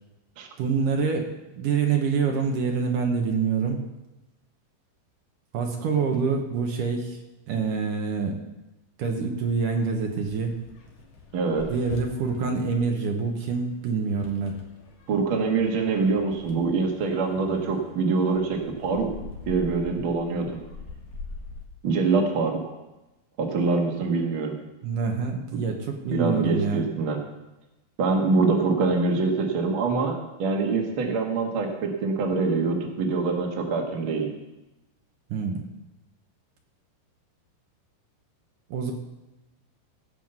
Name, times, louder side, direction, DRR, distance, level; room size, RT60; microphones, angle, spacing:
voice 1, 0.6-3.8 5.5-7.2 7.5-8.4 9.0-10.6 11.7-14.6 24.8-26.8 35.3-35.6 38.7-38.9, right 5 dB, 70° right, 2 dB, 2.1 m, -26 dB
sound 1, 9.4-21.6, left 3 dB, 50° left, 2.0 m, -44 dB
voice 2, 11.3-11.6 15.1-19.1 19.5-20.6 21.8-22.6 23.4-24.6 26.1-27.2 28.0-34.3, right 4 dB, 90° right, 2 dB, 1.1 m, -24 dB
17.0 x 5.7 x 7.8 m, 1.0 s
omnidirectional pair, 5.2 m